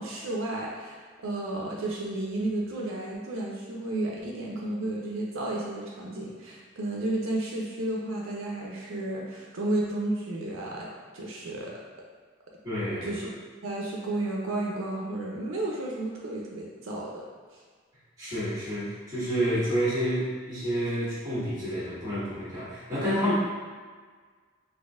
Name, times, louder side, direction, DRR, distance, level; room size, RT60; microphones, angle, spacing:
voice 1, 0.0-11.7 13.0-13.4 13.6-17.2, right 1 dB, 85° right, -3 dB, 0.5 m, -32 dB
voice 2, 12.6-13.1 18.2-23.3, equal, 20° right, -11 dB, 1.4 m, -29 dB
4.1 x 2.6 x 2.4 m, 1.5 s
head